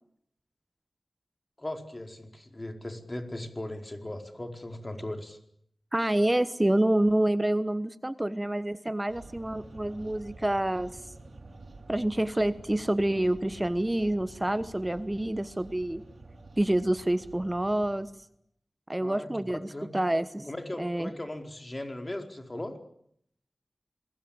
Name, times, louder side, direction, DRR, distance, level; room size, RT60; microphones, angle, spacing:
voice 1, 1.6-5.4 19.0-19.9 20.5-22.8, left 1 dB, 30° left, 5 dB, 4.7 m, -38 dB
voice 2, 5.9-11.0 11.9-16.0 16.6-18.1 18.9-19.6 19.9-20.5 20.8-21.1, right 1 dB, 20° right, 13 dB, 1.1 m, -27 dB
sound 1, 9.1-18.3, right 2 dB, 75° right, 6.2 m, -49 dB
26.5 x 22.0 x 8.9 m, 0.70 s
wide cardioid pair, 60°, 0 cm